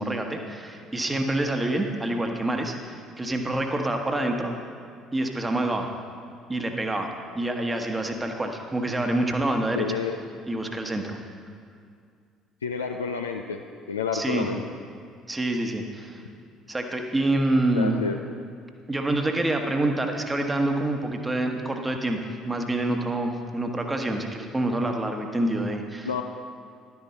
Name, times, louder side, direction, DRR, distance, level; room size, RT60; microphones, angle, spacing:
voice 1, 0.0-4.5 5.1-5.9 6.5-7.1 7.3-10.0 10.5-11.2 14.1-14.5 15.3-16.2 16.7-18.0 18.9-22.2 22.4-26.2, right 1 dB, 15° right, 4 dB, 1.1 m, -27 dB
voice 2, 9.8-10.2 12.6-13.6 13.9-14.6 17.7-18.2 26.0-26.2, left 5 dB, 80° left, 4 dB, 0.3 m, -29 dB
11.5 x 9.5 x 4.3 m, 2.2 s
figure-of-eight pair, 55°, 0 cm